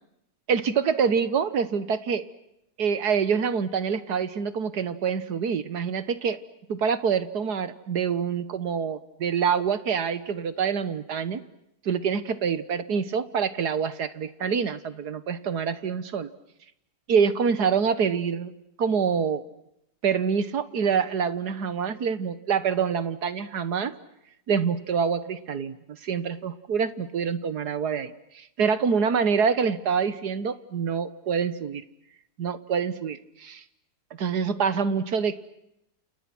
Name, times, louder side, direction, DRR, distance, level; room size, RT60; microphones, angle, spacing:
voice 1, 0.5-2.2 2.8-6.4 6.7-11.4 11.9-16.3 17.1-18.5 18.8-19.4 20.0-23.9 24.5-25.8 26.0-31.8 32.4-33.6 34.2-35.4, right 6 dB, 70° right, 14 dB, 1.8 m, -26 dB
29.5 x 29.0 x 6.1 m, 0.82 s
omnidirectional pair, 1.8 m